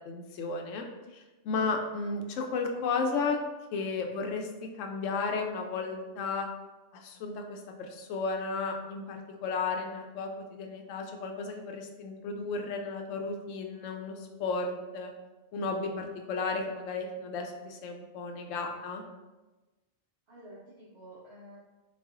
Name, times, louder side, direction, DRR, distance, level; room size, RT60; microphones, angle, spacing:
voice 1, 0.0-0.8 1.1-3.4 3.7-6.5 6.9-15.1 15.5-19.0, left 4 dB, 85° left, 3 dB, 0.9 m, -34 dB
voice 2, 20.3-21.6, right 1 dB, 60° right, -9 dB, 1.2 m, -51 dB
4.1 x 2.3 x 3.5 m, 1.1 s
omnidirectional pair, 1.3 m